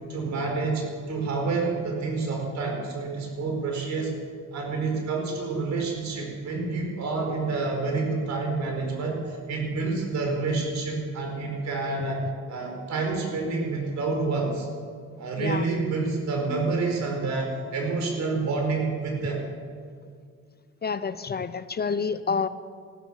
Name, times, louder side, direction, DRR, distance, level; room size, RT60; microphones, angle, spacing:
voice 1, 0.1-4.1 4.5-12.2 12.5-14.7 15.2-19.4, right 3 dB, 65° right, 1 dB, 4.6 m, -28 dB
voice 2, 20.8-22.5, left 5 dB, 30° left, 13 dB, 0.6 m, -28 dB
14.5 x 13.0 x 7.2 m, 2.1 s
cardioid pair, 90°, 30 cm